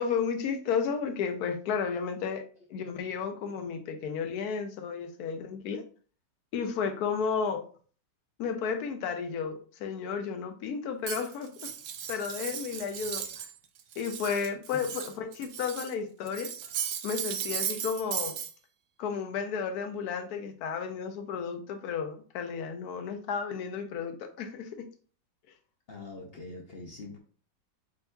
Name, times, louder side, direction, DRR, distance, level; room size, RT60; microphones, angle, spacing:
voice 1, 0.0-2.4 2.7-5.8 6.5-7.6 8.4-11.7 12.1-13.5 14.0-16.5 17.0-18.4 19.0-24.9, left 6 dB, 65° left, 7 dB, 1.1 m, -33 dB
Cutlery silverware, 11.0-13.5 13.8-15.9 16.3-18.5, right 8 dB, 85° right, 0.6 m, -36 dB
voice 2, 25.9-27.2, left 3 dB, 45° left, 0 dB, 0.8 m, -43 dB
7.8 x 2.7 x 2.3 m, 0.42 s
omnidirectional pair, 1.9 m